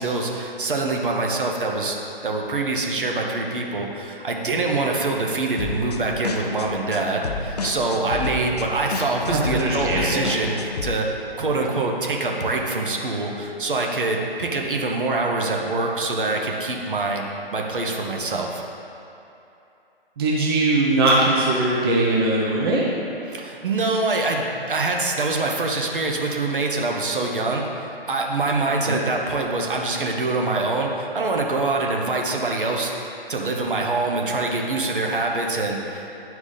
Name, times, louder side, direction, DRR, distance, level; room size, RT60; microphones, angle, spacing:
voice 1, 0.0-2.0 2.2-11.1 11.4-17.2 17.5-18.6 23.3-36.1, right 3 dB, 60° right, 0 dB, 1.0 m, -25 dB
sound 1, 5.6-10.9, left 3 dB, 40° left, 0.5 m, -31 dB
voice 2, 9.3-10.2 20.2-22.9 28.9-29.0, right 2 dB, 25° right, -4 dB, 0.7 m, -20 dB
10.0 x 4.7 x 4.0 m, 2.8 s
figure-of-eight pair, 140°, 31 cm